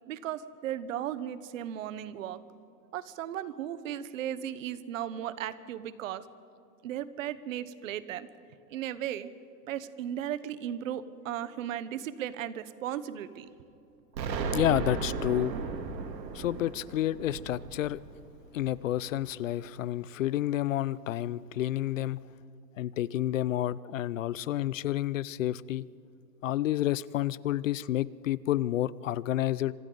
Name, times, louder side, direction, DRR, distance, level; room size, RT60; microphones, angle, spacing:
voice 1, 0.1-2.4 2.9-6.3 6.8-8.3 8.7-9.3 9.7-13.5, right 10 dB, 50° right, 15 dB, 1.1 m, -36 dB
Explosion, 14.1-19.0, right 5 dB, 85° right, 3.1 m, -35 dB
voice 2, 14.5-15.5 16.3-18.0 18.5-22.2 22.8-25.9 26.4-29.7, left 13 dB, 50° left, 20 dB, 0.5 m, -30 dB
27.5 x 26.0 x 3.9 m, 2.8 s
hypercardioid pair, 165°, 50 cm